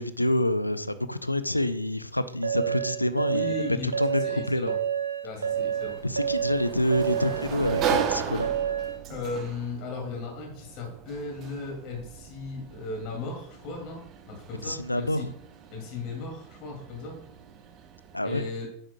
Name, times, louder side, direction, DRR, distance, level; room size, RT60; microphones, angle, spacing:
voice 1, 0.0-4.7 6.0-8.5 14.6-15.3 18.1-18.5, left 1 dB, 85° left, 13 dB, 0.4 m, -27 dB
sound 1, 2.4-9.0, right 8 dB, 75° right, 0.9 m, -29 dB
voice 2, 3.3-3.9 4.2-4.7 5.2-6.0 9.1-14.0 14.3-15.3 15.7-17.2 18.2-18.7, left 3 dB, 40° left, 1 dB, 2.3 m, -36 dB
Sliding door, 5.5-18.1, right 7 dB, 35° right, 0.7 m, -37 dB
9.0 x 7.4 x 2.2 m, 0.66 s
figure-of-eight pair, 90°, 0 cm